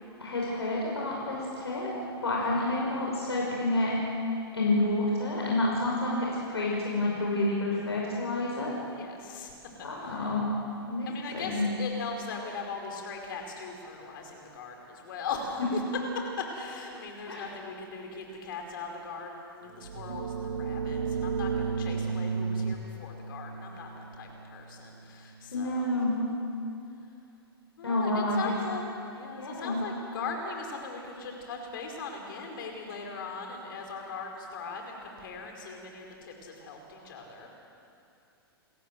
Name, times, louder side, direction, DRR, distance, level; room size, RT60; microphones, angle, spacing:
voice 1, 0.2-1.9 2.2-3.9 4.5-8.7 9.8-10.4 10.9-11.7 17.3-17.4 25.5-26.2 27.8-28.5 29.3-29.8, left 2 dB, 85° left, -4 dB, 5.7 m, -29 dB
voice 2, 8.9-9.5 9.8-10.3 11.1-15.8 16.4-26.0 27.8-28.8 29.1-37.5, left 4 dB, 55° left, 2 dB, 5.0 m, -39 dB
sound 1, 19.8-25.3, right 5 dB, 75° right, 1.3 m, -33 dB
29.0 x 14.5 x 7.8 m, 2.6 s
figure-of-eight pair, 110°, 13 cm